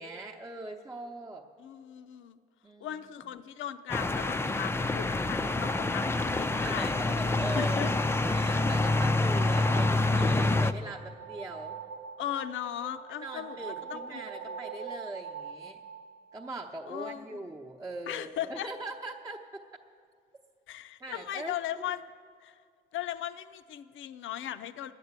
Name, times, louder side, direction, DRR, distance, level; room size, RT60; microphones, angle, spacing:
voice 1, 0.0-1.5 2.6-3.0 6.5-8.0 8.2-11.8 13.2-15.8 16.3-19.4 21.0-21.5, right 2 dB, 15° right, -1 dB, 0.9 m, -41 dB
voice 2, 1.6-2.4 2.8-6.9 7.5-7.9 12.2-14.6 16.9-17.4 18.1-18.7 20.7-22.1 22.4-22.6 22.9-24.9, left 11 dB, 75° left, 11 dB, 0.6 m, -38 dB
sound 1, 3.9-10.7, left 2 dB, 10° left, 0.4 m, -27 dB
sound 2, 6.5-16.9, right 6 dB, 75° right, 0.8 m, -45 dB
10.5 x 9.6 x 8.1 m, 2.2 s
cardioid pair, 90°, 20 cm